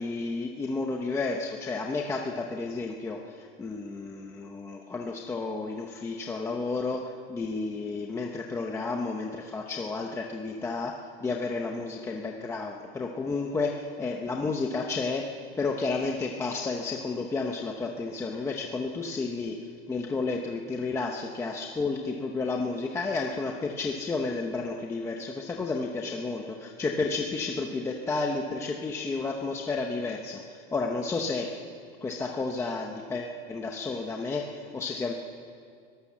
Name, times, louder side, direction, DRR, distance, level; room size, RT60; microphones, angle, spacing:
voice 1, 0.0-15.2 15.6-19.5 19.9-31.5 32.0-35.1, left 3 dB, 10° left, 1 dB, 0.8 m, -31 dB
21.5 x 18.5 x 7.4 m, 2.1 s
supercardioid pair, 175°, 32 cm